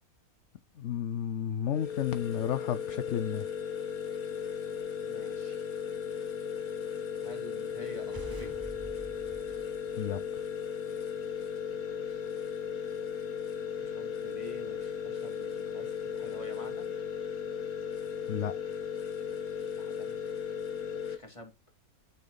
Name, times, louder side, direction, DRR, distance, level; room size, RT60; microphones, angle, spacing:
voice 1, 0.7-3.5 10.0-10.2 18.3-18.6, left 9 dB, 60° left, 0.9 m, -32 dB
sound 1, 1.7-21.2, left 7 dB, 75° left, 1.6 m, -36 dB
voice 2, 5.1-5.7 7.2-8.6 11.7-12.3 13.6-16.9 19.6-20.2 20.9-21.5, equal, 20° left, 3.0 m, -49 dB
sound 2, 7.8-10.6, right 3 dB, 25° right, 0.5 m, -48 dB
11.5 x 7.1 x 4.0 m
omnidirectional pair, 1.6 m